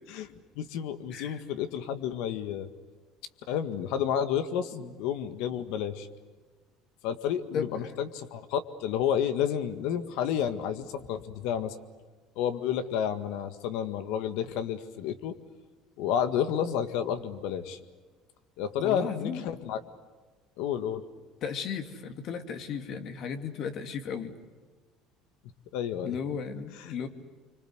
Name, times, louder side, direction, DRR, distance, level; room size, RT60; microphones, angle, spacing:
voice 1, 0.1-2.7 3.5-6.1 7.0-11.8 12.4-15.4 16.0-17.8 18.6-19.8 20.6-21.0 25.7-26.2 26.8-26.9, left 9 dB, 80° left, 10 dB, 1.8 m, -30 dB
voice 2, 7.5-8.0 18.8-19.5 21.4-24.3 26.0-27.1, left 6 dB, 55° left, 7 dB, 2.6 m, -35 dB
26.5 x 25.0 x 8.1 m, 1.4 s
supercardioid pair, 110°, 0 cm